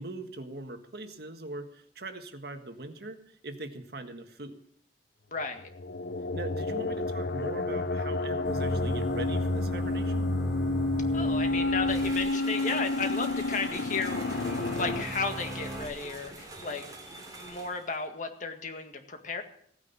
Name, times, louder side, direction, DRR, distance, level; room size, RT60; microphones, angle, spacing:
voice 1, 0.0-3.2 3.4-4.6 6.3-10.3, right 2 dB, 60° right, 7 dB, 1.6 m, -40 dB
voice 2, 5.3-5.7 11.1-16.9 17.4-19.4, left 4 dB, 45° left, 5 dB, 1.9 m, -34 dB
sound 1, 5.6-15.0, left 2 dB, 65° left, 0.6 m, -30 dB
sound 2, 8.4-12.1 14.0-15.9, right 1 dB, ahead, 2.9 m, -38 dB
sound 3, 11.9-18.0, right 2 dB, 20° right, 3.3 m, -45 dB
16.5 x 9.6 x 6.9 m, 0.64 s
head